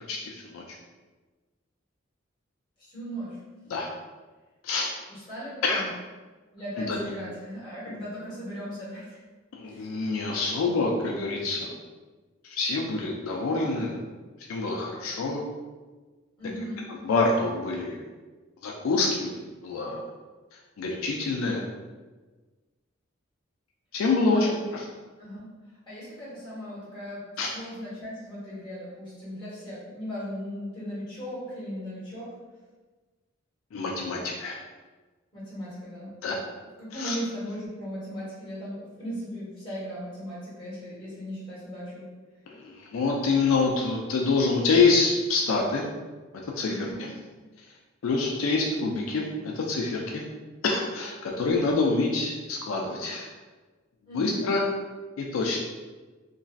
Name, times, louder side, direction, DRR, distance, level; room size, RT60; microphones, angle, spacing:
voice 1, 0.1-0.8 3.7-3.9 4.6-4.9 5.6-5.8 6.8-7.1 7.9-8.0 9.5-11.7 12.4-14.0 14.5-15.4 17.0-18.0 18.6-19.4 19.6-20.0 20.8-21.6 23.9-24.9 27.4-27.5 33.7-34.6 36.2-36.4 36.9-37.2 42.5-45.8 46.3-46.9 48.0-50.2 50.6-53.3 54.1-54.6 55.2-55.6, left 3 dB, 80° left, -1 dB, 0.4 m, -26 dB
voice 2, 2.8-3.4 5.1-5.9 6.5-9.2 9.6-9.9 16.4-17.0 24.3-24.7 25.2-25.5 25.9-27.2 27.5-32.4 35.3-36.1 36.8-42.0 46.6-47.0 54.1-54.4, equal, 25° left, -9 dB, 1.3 m, -37 dB
2.9 x 2.6 x 2.4 m, 1.3 s
head